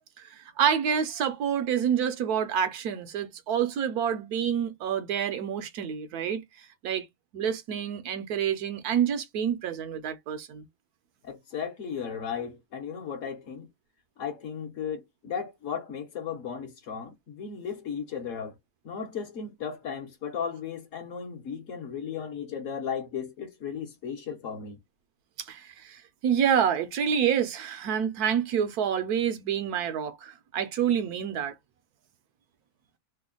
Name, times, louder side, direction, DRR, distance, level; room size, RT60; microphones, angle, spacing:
voice 1, 0.2-7.1 7.3-10.6 25.4-31.6, right 8 dB, 80° right, 1.2 m, -28 dB
voice 2, 11.2-13.7 14.2-18.5 18.8-24.8, left 7 dB, 60° left, 1.1 m, -35 dB
3.3 x 2.2 x 3.7 m
omnidirectional pair, 1.6 m